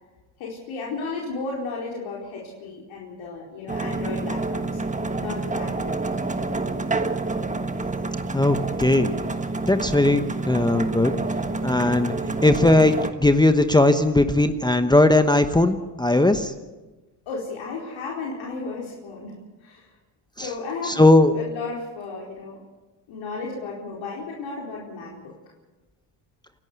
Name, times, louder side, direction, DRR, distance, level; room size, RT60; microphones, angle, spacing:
voice 1, 0.4-4.6 5.2-6.0 17.3-19.9 20.4-22.6 23.1-25.3, left 3 dB, 70° left, -3 dB, 4.5 m, -34 dB
sound 1, 3.7-13.1, right 3 dB, 15° right, 1.4 m, -28 dB
voice 2, 8.3-9.1 9.7-11.1 11.6-12.1 12.4-16.5 20.4-20.5 20.9-21.3, left 2 dB, 10° left, 9 dB, 1.0 m, -18 dB
27.5 x 12.0 x 8.1 m, 1.2 s
supercardioid pair, 85°, 48 cm